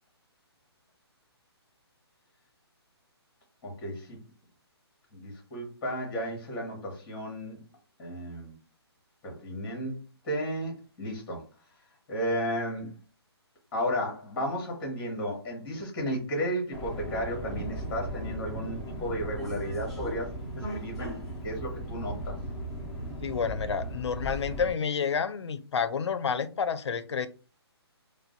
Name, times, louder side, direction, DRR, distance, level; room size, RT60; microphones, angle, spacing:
voice 1, 3.6-4.2 5.1-7.6 8.0-8.6 9.2-11.4 12.1-12.9 13.7-21.2 21.4-22.4, equal, 15° left, 0 dB, 1.2 m, -33 dB
Subway metro underground, 16.7-24.7, right 1 dB, ahead, 0.5 m, -37 dB
voice 2, 23.2-27.3, left 6 dB, 80° left, 13 dB, 0.4 m, -29 dB
2.5 x 2.1 x 3.8 m, 0.35 s
hypercardioid pair, 165°, 14 cm